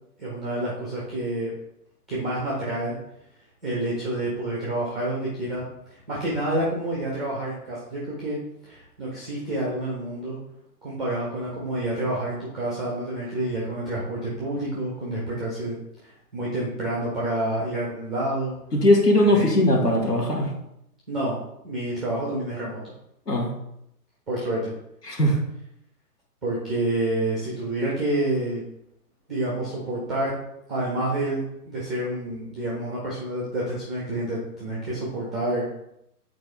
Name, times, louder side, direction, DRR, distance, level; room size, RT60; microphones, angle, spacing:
voice 1, 0.2-1.5 2.1-2.9 3.6-5.6 6.1-8.4 8.6-10.4 10.8-15.8 16.0-18.6 19.3-19.5 21.1-21.4 21.6-22.8 24.3-24.7 26.4-28.6 29.3-30.3 30.7-35.7, right 1 dB, ahead, -5 dB, 0.5 m, -28 dB
voice 2, 18.7-20.5 23.3-23.5 25.1-25.4, left 1 dB, 80° left, 1 dB, 1.8 m, -19 dB
8.1 x 4.5 x 3.2 m, 0.79 s
figure-of-eight pair, 130°, 47 cm